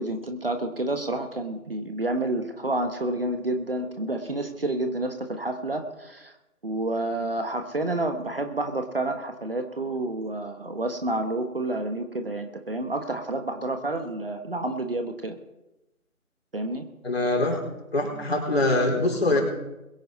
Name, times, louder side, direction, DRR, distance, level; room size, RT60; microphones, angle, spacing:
voice 1, 0.0-6.3 6.6-15.3 16.5-16.8, right 2 dB, 40° right, 6 dB, 1.4 m, -29 dB
voice 2, 17.0-17.6 17.9-19.4, left 2 dB, 45° left, 0 dB, 4.5 m, -23 dB
22.0 x 10.0 x 4.1 m, 0.96 s
figure-of-eight pair, 160°, 44 cm